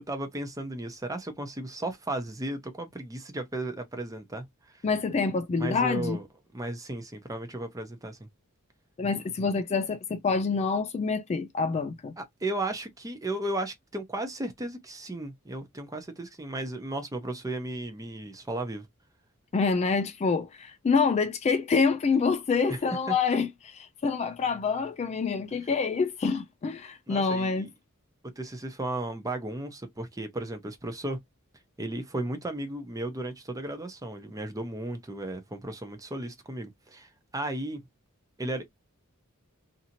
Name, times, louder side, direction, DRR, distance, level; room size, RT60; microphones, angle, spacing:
voice 1, 0.0-4.8 5.6-6.3 6.5-8.3 12.2-18.9 22.7-22.8 23.1-23.2 27.1-27.7 28.4-31.2 31.8-37.8 38.4-38.6, right 1 dB, 15° right, 0.6 m, -35 dB
voice 2, 4.8-6.2 9.0-12.1 19.5-27.7, left 4 dB, 30° left, 0.3 m, -27 dB
2.7 x 2.5 x 2.8 m
head